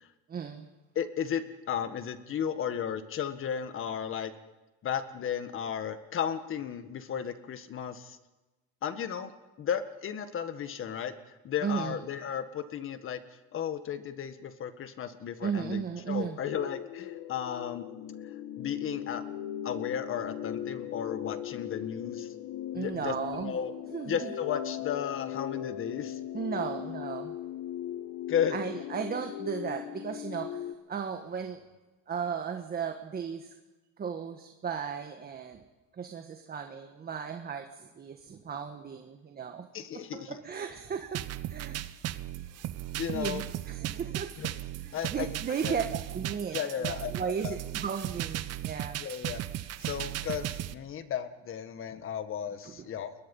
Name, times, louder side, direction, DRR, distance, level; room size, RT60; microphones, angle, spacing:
voice 1, 0.3-0.7 11.6-12.0 15.4-16.4 22.7-23.5 23.9-24.3 26.3-27.3 28.5-31.6 32.1-33.5 34.0-35.6 35.9-39.7 40.1-41.2 41.5-41.8 43.1-44.3 44.8-45.8 46.1-49.1 52.6-52.7, right 7 dB, 30° right, 5 dB, 1.5 m, -35 dB
voice 2, 0.9-4.3 4.8-8.2 8.8-9.3 9.6-11.1 11.4-13.2 13.5-17.9 18.6-19.2 19.6-22.3 22.7-23.7 24.0-26.2 28.3-28.6 39.7-40.4 43.0-43.4 44.4-44.6 44.9-45.3 45.6-45.8 46.5-47.1 47.4-47.5 49.0-49.4 49.8-53.1, left 8 dB, 40° left, 10 dB, 1.7 m, -34 dB
sound 1, 16.4-30.7, left 11 dB, 65° left, 1.4 m, -38 dB
sound 2, 41.1-50.7, right 13 dB, 50° right, 1.0 m, -36 dB
30.0 x 21.5 x 5.5 m, 1.1 s
cardioid pair, 140°, 33 cm